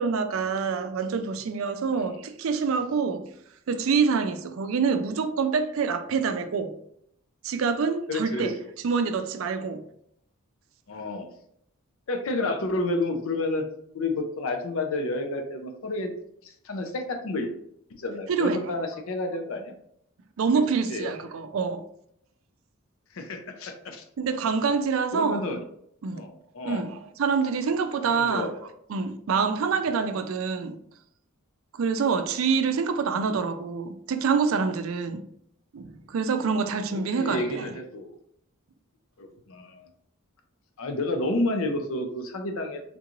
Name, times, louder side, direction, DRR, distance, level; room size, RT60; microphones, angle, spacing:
voice 1, 0.0-3.2 3.7-6.7 7.4-8.5 8.8-9.8 18.3-18.6 20.4-21.8 24.2-25.5 26.0-26.2 26.6-28.5 28.9-30.7 31.7-35.2 35.7-37.7, right 5 dB, 70° right, 0.4 m, -26 dB
voice 2, 8.1-8.7 10.9-11.3 12.1-13.6 13.9-16.1 16.6-17.5 18.0-19.7 20.9-21.2 23.1-24.0 25.1-25.6 26.1-26.9 28.0-28.7 36.9-38.1 39.2-39.8 40.8-42.8, left 2 dB, 70° left, 0.5 m, -30 dB
3.7 x 2.4 x 2.9 m
head